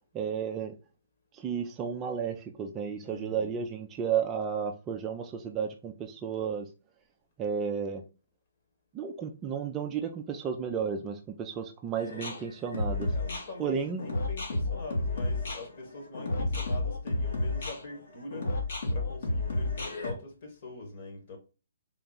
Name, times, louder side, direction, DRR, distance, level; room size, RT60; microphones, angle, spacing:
voice 1, 0.1-0.8 1.3-6.7 7.4-8.0 8.9-13.1 13.6-14.0, right 7 dB, 20° right, 0.4 m, -33 dB
voice 2, 3.0-3.6 12.0-12.5 13.1-18.5 18.9-21.4, left 3 dB, 40° left, 1.4 m, -44 dB
sound 1, 12.0-20.1, left 2 dB, 60° left, 1.3 m, -31 dB
3.7 x 2.3 x 3.9 m
hypercardioid pair, 155°, 0 cm